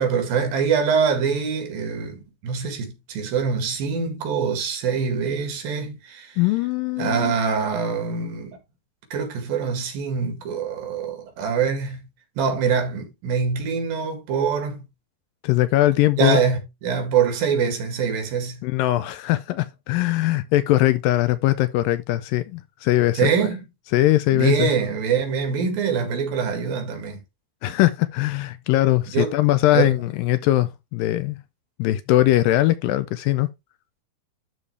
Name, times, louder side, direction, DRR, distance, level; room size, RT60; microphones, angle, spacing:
voice 1, 0.0-6.4 7.0-8.6 9.1-12.1 12.4-14.8 16.2-18.6 23.2-23.6 24.3-27.2 29.1-29.4 29.7-30.0, right 6 dB, 75° right, 3.7 m, -24 dB
voice 2, 6.4-7.3 15.4-16.4 18.6-23.5 23.9-24.7 27.6-31.4 31.8-33.5, left 15 dB, 80° left, 2.1 m, -21 dB
12.0 x 4.2 x 3.2 m
omnidirectional pair, 4.2 m